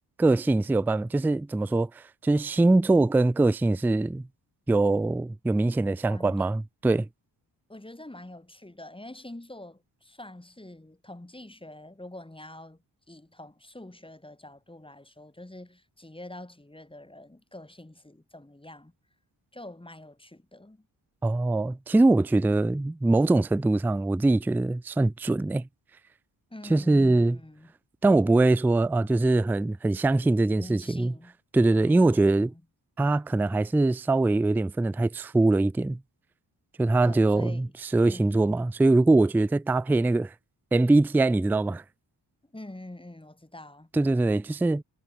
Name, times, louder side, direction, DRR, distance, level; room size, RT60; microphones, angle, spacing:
voice 1, 0.2-4.3 4.7-7.1 21.2-25.7 26.7-27.4 28.0-31.1 31.5-32.5 33.0-36.0 36.8-37.7 37.9-40.3 40.7-41.8 43.9-44.8, right 2 dB, 5° right, 0.3 m, -23 dB
voice 2, 6.0-6.5 7.7-18.9 19.5-20.9 26.5-27.7 30.6-31.4 31.7-32.6 37.0-37.7 38.1-38.5 42.5-43.9, left 1 dB, 10° left, 7.0 m, -45 dB
cardioid pair, 85°, 44 cm